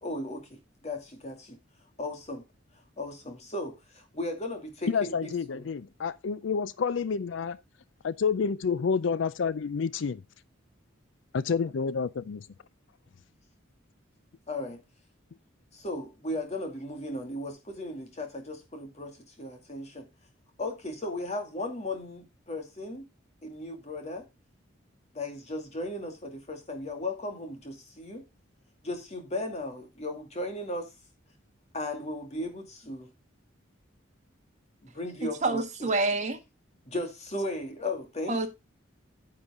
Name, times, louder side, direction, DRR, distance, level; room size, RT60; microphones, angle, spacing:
voice 1, 0.0-1.6 2.0-2.4 3.0-5.7 14.5-14.8 15.7-20.1 20.6-23.1 23.4-24.3 25.1-28.2 28.8-30.9 31.7-33.1 34.8-35.9 36.9-38.5, left 1 dB, 35° left, 2.4 m, -36 dB
voice 2, 4.9-7.6 8.0-10.2 11.3-12.5, left 5 dB, 65° left, 0.4 m, -29 dB
voice 3, 35.4-36.4 38.3-38.5, right 3 dB, 35° right, 1.6 m, -27 dB
9.8 x 7.5 x 3.6 m
head